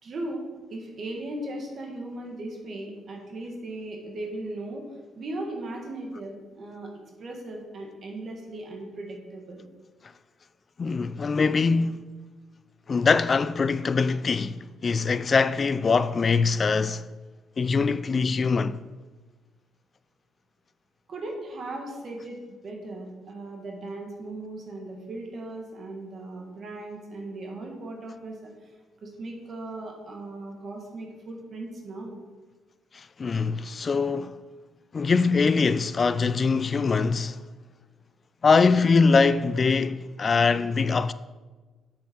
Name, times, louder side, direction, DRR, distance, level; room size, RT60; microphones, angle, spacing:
voice 1, 0.0-4.8 5.1-6.9 7.2-9.6 21.1-28.7 29.0-32.2, right 2 dB, 50° right, 1.6 m, -37 dB
voice 2, 10.8-12.1 12.9-17.0 17.6-18.8 32.9-34.4 34.9-37.4 38.4-41.1, left 4 dB, 40° left, 0.4 m, -23 dB
7.5 x 6.7 x 4.5 m
cardioid pair, 90°, 0 cm